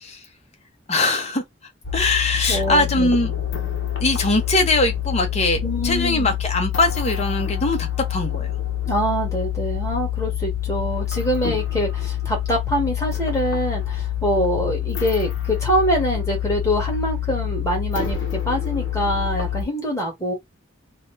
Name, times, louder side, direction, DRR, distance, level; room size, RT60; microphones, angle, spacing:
voice 1, 0.9-1.4 1.9-3.3 4.0-8.5, left 2 dB, 35° left, 0.8 m, -21 dB
sound 1, 1.8-19.6, left 11 dB, 65° left, 0.9 m, -26 dB
voice 2, 2.5-3.1 5.6-6.4 8.9-20.3, equal, 15° left, 1.5 m, -24 dB
2.7 x 2.2 x 3.2 m
head